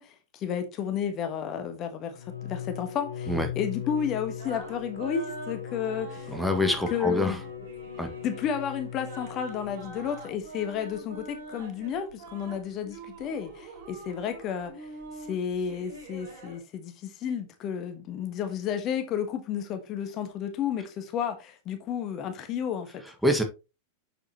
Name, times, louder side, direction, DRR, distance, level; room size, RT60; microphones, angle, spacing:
voice 1, 0.0-6.3 6.6-7.4 8.0-14.9 15.2-23.0, left 8 dB, 35° left, 1.3 m, -32 dB
Bowed string instrument, 2.1-10.4, left 8 dB, 85° left, 2.7 m, -39 dB
sound 1, 4.0-16.6, right 3 dB, 55° right, 4.1 m, -45 dB
voice 2, 6.3-7.4 8.0-8.1 23.2-23.4, left 1 dB, ahead, 1.7 m, -25 dB
7.4 x 7.2 x 2.9 m
figure-of-eight pair, 90°, 0 cm